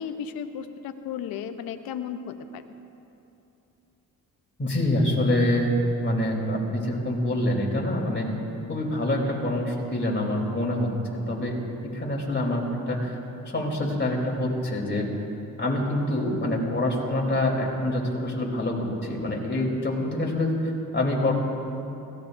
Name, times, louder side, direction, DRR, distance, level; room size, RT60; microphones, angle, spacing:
voice 1, 0.0-2.7, left 7 dB, 90° left, 9 dB, 0.8 m, -34 dB
voice 2, 4.6-5.7 6.0-8.3 8.7-11.6 11.8-13.2 13.5-15.1 15.6-21.3, left 1 dB, 30° left, -1 dB, 3.4 m, -26 dB
22.0 x 17.0 x 2.6 m, 2.8 s
cardioid pair, 75°, 35 cm